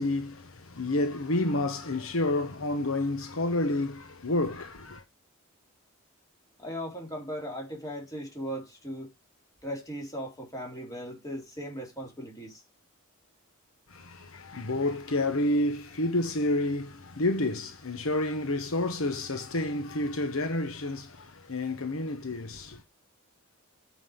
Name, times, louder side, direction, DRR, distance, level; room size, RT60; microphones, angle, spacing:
voice 1, 0.0-5.0 13.9-22.8, left 2 dB, 70° left, 1.2 m, -29 dB
voice 2, 6.6-9.1 9.6-12.6, equal, 15° left, 4.0 m, -38 dB
9.4 x 5.3 x 5.2 m
head